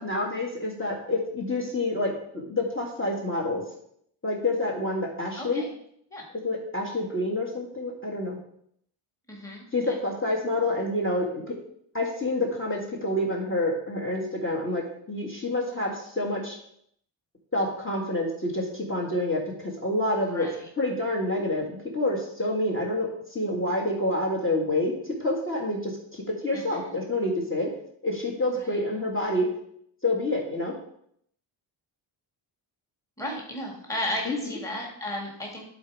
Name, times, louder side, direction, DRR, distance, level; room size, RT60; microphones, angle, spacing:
voice 1, 0.0-3.6 4.2-5.6 6.4-8.4 9.7-11.5 11.9-14.8 15.1-16.6 17.5-20.5 20.8-24.9 25.2-27.7 28.0-29.5 30.0-30.7 34.3-34.4, left 1 dB, 25° left, -1 dB, 1.7 m, -28 dB
voice 2, 5.4-5.7 6.1-6.3 9.3-10.0 20.2-20.7 26.5-26.9 28.5-28.8 33.2-35.6, left 1 dB, 5° left, -1 dB, 1.7 m, -35 dB
11.0 x 4.1 x 4.8 m, 0.68 s
wide cardioid pair, 150°, 50 cm